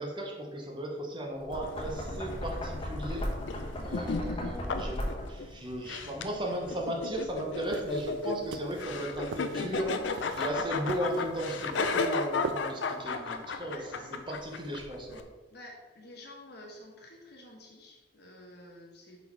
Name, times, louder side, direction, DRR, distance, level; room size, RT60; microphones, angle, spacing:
voice 1, 0.0-3.3 3.8-5.0 5.3-10.0 10.3-13.9 14.3-15.3, right 1 dB, 25° right, 1 dB, 1.0 m, -36 dB
Knock, 1.4-5.5, equal, 30° left, 1.1 m, -36 dB
sound 1, 1.6-15.2, left 4 dB, 85° left, 0.5 m, -35 dB
sound 2, 7.7-13.0, right 6 dB, 75° right, 0.3 m, -43 dB
voice 2, 13.6-14.2 15.5-19.2, left 1 dB, 60° left, 0 dB, 1.3 m, -50 dB
5.6 x 4.2 x 4.6 m, 1.3 s
head